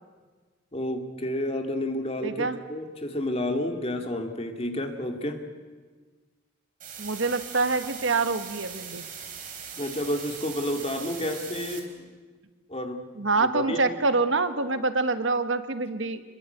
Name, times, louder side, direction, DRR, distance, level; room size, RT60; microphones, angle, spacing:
voice 1, 0.7-5.4 9.8-11.9 12.7-13.0 13.4-14.0, left 1 dB, 30° left, 5 dB, 2.3 m, -30 dB
voice 2, 2.2-2.6 7.0-9.0 13.2-16.2, right 3 dB, 75° right, 10 dB, 1.3 m, -26 dB
sound 1, 6.8-11.8, right 7 dB, 40° right, 3.7 m, -40 dB
26.5 x 22.5 x 8.0 m, 1.4 s
head